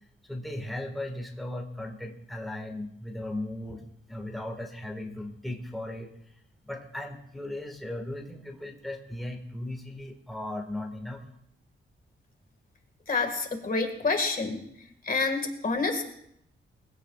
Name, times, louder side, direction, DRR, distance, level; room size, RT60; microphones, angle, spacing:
voice 1, 0.3-6.1 6.6-11.2, left 1 dB, ahead, 2 dB, 1.7 m, -37 dB
voice 2, 13.1-14.6 15.0-16.0, left 3 dB, 45° left, 5 dB, 1.9 m, -28 dB
22.5 x 16.0 x 2.4 m, 0.73 s
wide cardioid pair, 130°, 21 cm